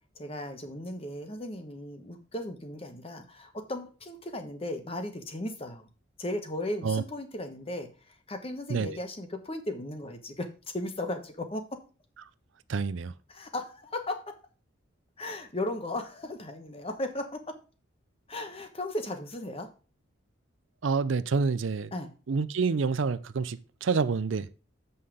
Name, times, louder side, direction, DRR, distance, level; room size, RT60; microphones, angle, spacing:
voice 1, 0.2-5.9 6.2-10.5 10.7-11.7 13.3-14.4 15.2-17.6 18.3-19.7 21.9-22.1, left 1 dB, 30° left, 1.1 m, -36 dB
voice 2, 12.7-13.1 20.8-21.9 22.3-24.6, right 4 dB, 70° right, 0.5 m, -28 dB
7.7 x 5.6 x 4.9 m
head